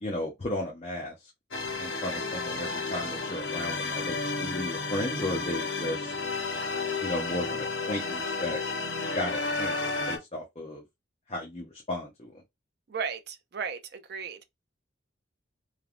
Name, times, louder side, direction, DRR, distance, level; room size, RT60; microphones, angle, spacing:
voice 1, 0.0-1.3 1.8-6.1 7.0-8.6 9.1-9.8 10.1-10.8 11.3-12.3, left 1 dB, 30° left, 0.6 m, -34 dB
sound 1, 1.5-10.2, left 3 dB, 70° left, 0.9 m, -32 dB
voice 2, 12.9-14.4, right 6 dB, 50° right, 0.4 m, -35 dB
3.2 x 2.2 x 2.4 m
head